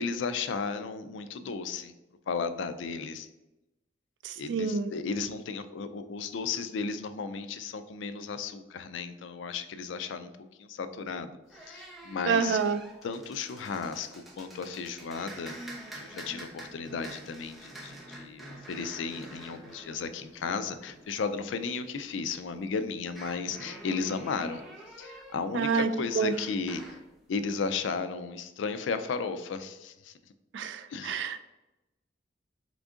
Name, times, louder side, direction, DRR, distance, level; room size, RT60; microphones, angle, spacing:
voice 1, 0.0-1.9 2.3-3.3 4.4-11.3 11.7-12.6 13.0-15.6 15.9-24.6 25.0-26.8 27.3-30.1 30.9-31.2, left 5 dB, 80° left, 10 dB, 0.4 m, -34 dB
voice 2, 4.2-4.9 12.3-12.8 25.5-26.3 30.5-31.4, right 5 dB, 70° right, 10 dB, 0.4 m, -28 dB
sound 1, 11.5-21.9 23.0-27.1, right 1 dB, ahead, 0.8 m, -47 dB
3.8 x 3.5 x 3.6 m, 0.98 s
head